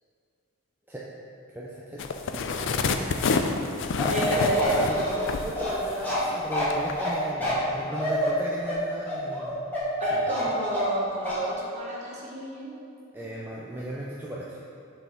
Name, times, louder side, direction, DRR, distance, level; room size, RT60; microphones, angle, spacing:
voice 1, 1.5-2.0 2.3-3.7 4.3-9.6 10.1-10.4 13.1-14.6, right 1 dB, 10° right, -5 dB, 0.4 m, -35 dB
sound 1, 2.0-6.3 6.7-6.9, left 4 dB, 60° left, 0.4 m, -28 dB
Bark, 4.0-11.0 11.3-11.4, left 1 dB, 10° left, 1.4 m, -28 dB
voice 2, 4.1-4.7 10.0-12.8, right 2 dB, 35° right, -5 dB, 1.2 m, -29 dB
8.0 x 4.2 x 3.7 m, 2.6 s
head